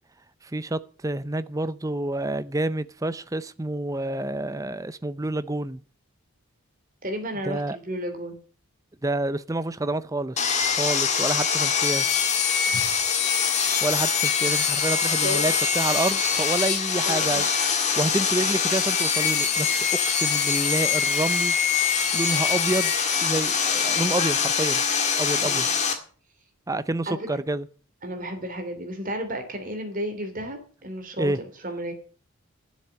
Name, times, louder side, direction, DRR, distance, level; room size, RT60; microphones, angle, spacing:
voice 1, 0.5-5.8 7.5-7.8 9.0-12.1 13.8-17.5 18.0-21.5 22.1-22.9 23.2-24.8 25.2-25.7 26.7-27.7 31.2-31.4, right 2 dB, 15° right, 0.5 m, -28 dB
voice 2, 7.0-8.4 12.7-13.1 15.2-15.5 17.0-17.4 25.4-25.9 27.1-27.4 28.0-31.9, equal, 40° right, 2.9 m, -33 dB
Sawing, 10.4-25.9, left 6 dB, 30° left, 1.8 m, -23 dB
12.0 x 7.2 x 7.7 m
head